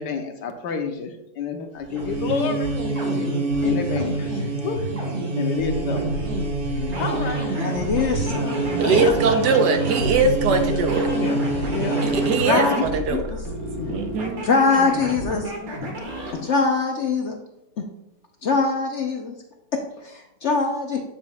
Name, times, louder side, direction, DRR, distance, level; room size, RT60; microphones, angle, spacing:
voice 1, 0.0-2.7 3.6-4.8 5.4-6.3 7.0-7.7 8.5-9.6 10.1-10.2 10.6-10.9 11.2-11.4 11.7-12.0 12.7-13.0, left 5 dB, 80° left, 5 dB, 1.5 m, -29 dB
sound 1, 1.8-12.8, right 2 dB, 30° right, 1.7 m, -26 dB
sound 2, 5.5-16.4, equal, 55° right, 1.9 m, -33 dB
voice 2, 7.6-9.0 12.5-12.8 13.1-13.4 13.8-13.9 14.4-15.5 15.8-15.9 16.3-17.4 17.8-17.9 18.4-19.3 19.7-21.0, left 4 dB, 60° left, 2 dB, 0.8 m, -23 dB
voice 3, 8.8-11.1 12.0-13.2 13.9-14.4, right 4 dB, 80° right, 5 dB, 1.4 m, -21 dB
8.9 x 7.2 x 2.3 m, 0.87 s
omnidirectional pair, 1.8 m